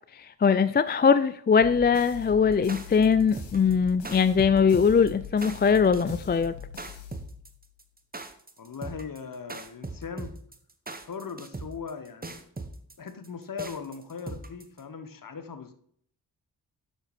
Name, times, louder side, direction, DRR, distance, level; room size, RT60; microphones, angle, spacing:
voice 1, 0.1-6.6, left 6 dB, 25° left, 14 dB, 0.4 m, -21 dB
sound 1, 1.6-7.7, left 8 dB, 80° left, 1.6 m, -43 dB
sound 2, 2.5-14.8, right 3 dB, 20° right, 1.2 m, -39 dB
voice 2, 8.6-10.4 11.0-12.4 13.0-15.7, left 6 dB, 50° left, 9 dB, 1.3 m, -39 dB
7.9 x 6.1 x 4.2 m, 0.63 s
supercardioid pair, 45°, 41 cm